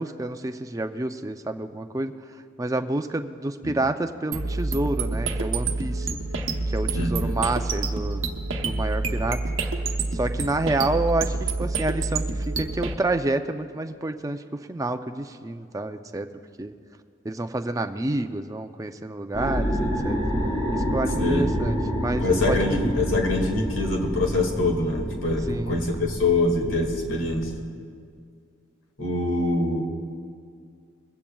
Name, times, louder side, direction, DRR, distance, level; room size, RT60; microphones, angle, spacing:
voice 1, 0.0-2.1 2.6-6.1 6.7-8.2 8.6-9.4 10.1-16.3 16.6-16.7 17.2-20.2 20.7-22.8 25.4-25.8, right 2 dB, 15° right, 7 dB, 0.4 m, -29 dB
sound 1, 4.3-12.9, right 3 dB, 80° right, 0.9 m, -27 dB
voice 2, 6.9-7.4 21.2-21.5 22.2-27.5 29.0-29.8, left 2 dB, 80° left, 1 dB, 2.1 m, -24 dB
sound 2, 19.3-27.6, equal, 25° left, 4.2 m, -28 dB
21.5 x 16.0 x 2.3 m, 2.2 s
head